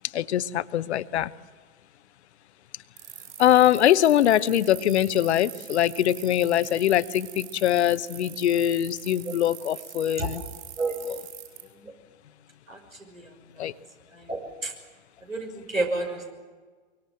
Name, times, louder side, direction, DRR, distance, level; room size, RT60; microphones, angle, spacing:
voice 1, 0.1-1.3 3.4-10.4 13.6-13.7, left 11 dB, 55° left, 14 dB, 1.0 m, -22 dB
sound 1, 3.0-11.6, right 16 dB, 40° right, 7.1 m, -42 dB
voice 2, 13.1-13.7 14.1-14.7 15.2-16.3, right 2 dB, 85° right, 3 dB, 6.2 m, -31 dB
24.0 x 24.0 x 7.7 m, 1.4 s
figure-of-eight pair, 100°, 39 cm